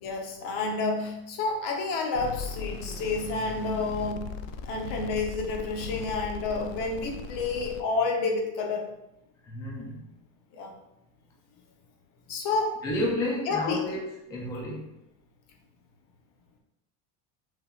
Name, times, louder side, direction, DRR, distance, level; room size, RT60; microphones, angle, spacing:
voice 1, 0.0-4.3 4.7-8.9 10.5-10.7 12.3-12.8 13.5-13.9, left 3 dB, 55° left, 2 dB, 1.0 m, -29 dB
sound 1, 2.1-7.8, left 5 dB, 85° left, 0.5 m, -38 dB
voice 2, 9.4-10.1 12.8-14.9, left 1 dB, 10° left, -2 dB, 0.3 m, -31 dB
5.7 x 3.5 x 2.4 m, 0.87 s
cardioid pair, 170°, 38 cm